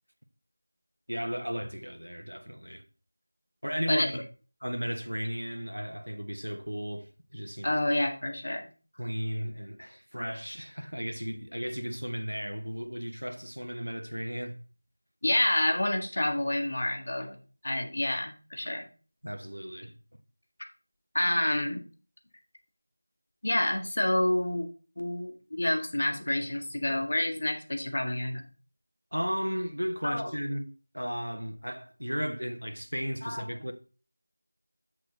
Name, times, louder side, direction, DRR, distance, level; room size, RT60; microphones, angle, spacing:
voice 1, 1.1-2.8 3.6-4.2 4.6-7.8 8.9-14.6 19.2-19.9 29.1-30.6 30.9-33.7, equal, 80° right, 1.3 m, -35 dB
voice 2, 7.6-8.7 15.2-17.4 17.6-18.9 21.1-21.8 23.4-24.7 25.0-28.4 30.0-30.2 33.2-33.4, left 1 dB, 45° left, 1.7 m, -28 dB
7.9 x 6.7 x 3.9 m
figure-of-eight pair, 170°, 0 cm